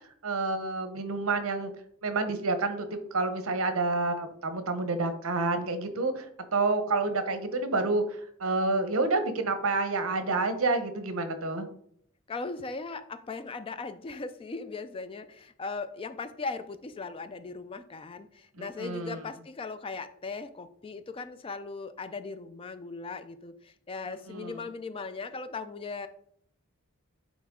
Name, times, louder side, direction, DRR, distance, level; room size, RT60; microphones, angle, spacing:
voice 1, 0.2-1.7 2.0-6.2 6.5-11.7 18.6-19.2 24.3-24.6, right 3 dB, 70° right, 9 dB, 0.9 m, -29 dB
voice 2, 12.3-26.1, left 4 dB, 25° left, 12 dB, 0.3 m, -38 dB
9.2 x 3.2 x 3.6 m, 0.67 s
head